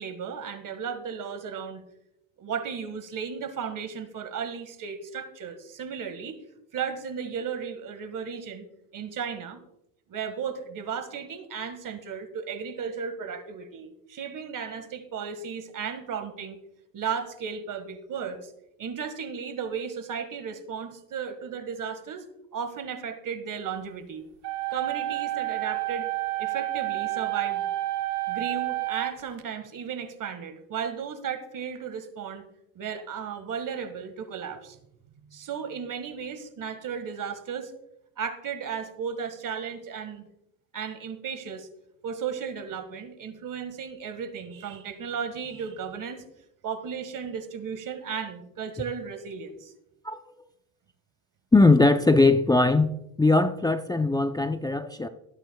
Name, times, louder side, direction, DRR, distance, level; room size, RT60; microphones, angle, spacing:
voice 1, 0.0-1.8 2.4-6.4 6.7-8.6 8.9-9.6 10.1-16.6 16.9-18.5 18.8-22.3 22.5-24.3 24.7-26.1 26.4-27.7 28.3-32.5 32.7-34.8 35.3-37.7 38.2-40.3 40.7-41.7 42.0-46.2 46.6-49.7, right 7 dB, 50° right, 10 dB, 1.7 m, -35 dB
sound 1, 24.4-29.4, right 17 dB, 75° right, 1.2 m, -30 dB
voice 2, 51.5-52.9 53.2-55.1, left 3 dB, 10° left, 8 dB, 0.6 m, -20 dB
19.0 x 8.9 x 2.3 m, 0.81 s
supercardioid pair, 85°, 40 cm